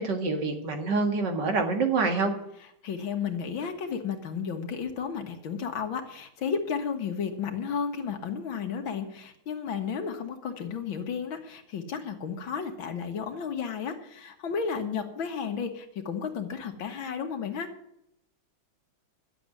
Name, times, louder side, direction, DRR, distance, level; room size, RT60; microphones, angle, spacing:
voice 1, 0.0-2.3, right 4 dB, 60° right, 5 dB, 2.4 m, -26 dB
voice 2, 2.8-17.7, left 6 dB, 80° left, 6 dB, 2.2 m, -33 dB
11.5 x 7.8 x 9.6 m, 0.77 s
omnidirectional pair, 2.1 m